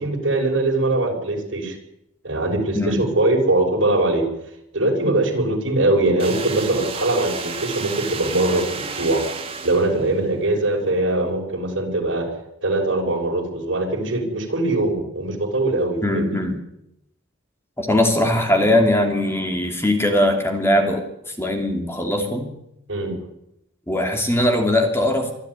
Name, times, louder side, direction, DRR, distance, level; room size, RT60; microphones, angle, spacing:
voice 1, 0.0-1.8 2.2-4.3 4.7-9.2 9.6-12.3 12.6-16.4 22.9-23.2, right 2 dB, 70° right, 1 dB, 6.3 m, -21 dB
voice 2, 2.7-3.1 16.0-16.6 17.8-22.5 23.9-25.3, left 1 dB, 15° left, 4 dB, 2.8 m, -20 dB
sound 1, 6.2-10.2, right 5 dB, 30° right, 2.5 m, -32 dB
25.0 x 13.0 x 9.7 m, 0.80 s
head